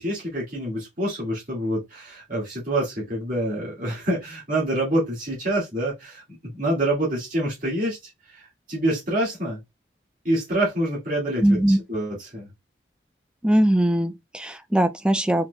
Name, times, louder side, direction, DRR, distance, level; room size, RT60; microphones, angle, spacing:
voice 1, 0.0-6.2 6.5-9.6 10.2-12.5, right 1 dB, 45° right, 2.2 m, -26 dB
voice 2, 11.4-11.8 13.4-15.5, right 1 dB, 5° right, 0.3 m, -20 dB
4.5 x 4.2 x 2.3 m
head